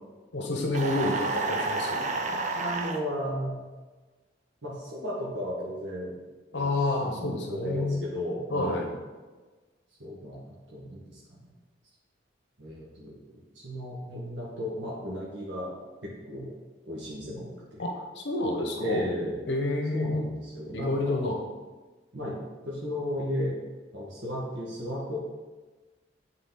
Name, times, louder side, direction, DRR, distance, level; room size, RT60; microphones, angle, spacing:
voice 1, 0.3-2.1 6.5-8.0 8.5-8.9 17.8-19.0 19.5-20.2 20.7-21.4, left 2 dB, 65° left, 2 dB, 0.9 m, -29 dB
sound 1, 0.7-3.0, right 3 dB, 40° right, 0.5 m, -30 dB
voice 2, 2.0-3.7 4.6-6.1 6.5-8.9 10.0-11.5 12.6-15.7 16.0-16.5 16.8-17.8 18.8-19.4 19.9-21.2 22.1-22.4 22.6-23.6 23.9-25.2, equal, 70° right, -5 dB, 1.3 m, -35 dB
8.0 x 3.9 x 3.8 m, 1.3 s
head